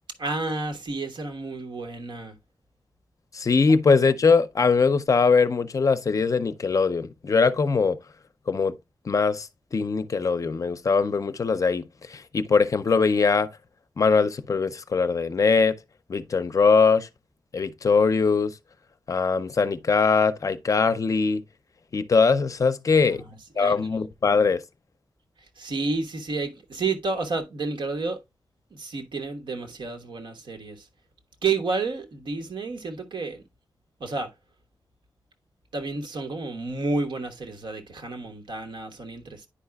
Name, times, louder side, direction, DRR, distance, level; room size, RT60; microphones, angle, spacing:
voice 1, 0.2-2.4 22.9-23.3 23.6-24.0 25.6-28.2 28.7-30.9 31.4-33.4 34.0-34.3 35.7-39.5, right 3 dB, 90° right, 1.2 m, -30 dB
voice 2, 3.3-8.0 8.5-8.7 9.1-11.8 12.1-13.5 14.0-15.8 16.1-17.1 17.5-18.5 19.1-21.4 21.9-23.2 23.6-24.6, left 4 dB, 45° left, 0.5 m, -21 dB
10.0 x 4.8 x 2.2 m
wide cardioid pair, 165°, 8 cm